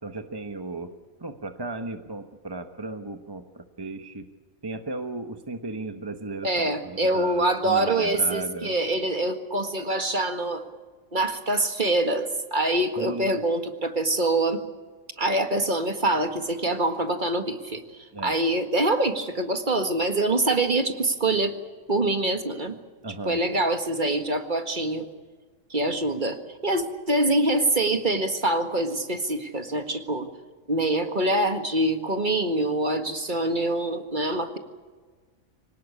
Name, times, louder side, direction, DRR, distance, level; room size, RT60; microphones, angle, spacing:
voice 1, 0.0-0.9 1.2-4.3 4.6-8.7 13.0-13.4 18.1-18.3 23.0-23.4, right 2 dB, 20° right, 6 dB, 1.0 m, -35 dB
voice 2, 6.4-10.6 11.1-14.6 15.2-21.5 21.9-22.8 23.3-25.1 25.7-30.3 30.7-34.6, right 2 dB, 35° right, 6 dB, 1.9 m, -25 dB
25.5 x 18.5 x 8.3 m, 1.4 s
omnidirectional pair, 1.5 m